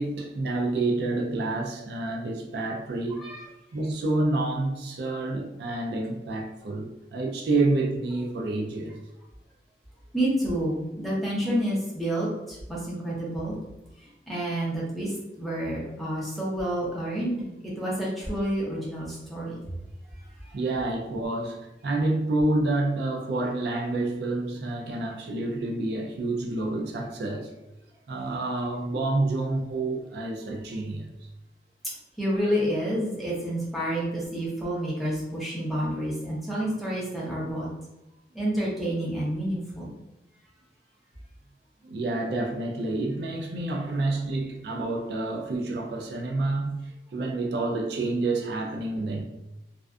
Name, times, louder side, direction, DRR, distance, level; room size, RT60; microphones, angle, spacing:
voice 1, 0.0-3.3 3.7-9.0 20.5-27.5 28.1-31.1 41.8-49.2, right 2 dB, 70° right, 0.4 m, -28 dB
voice 2, 10.1-13.6 14.3-19.7 20.4-20.5 32.2-37.7 38.3-39.9, equal, ahead, 0.7 m, -29 dB
2.4 x 2.3 x 2.3 m
head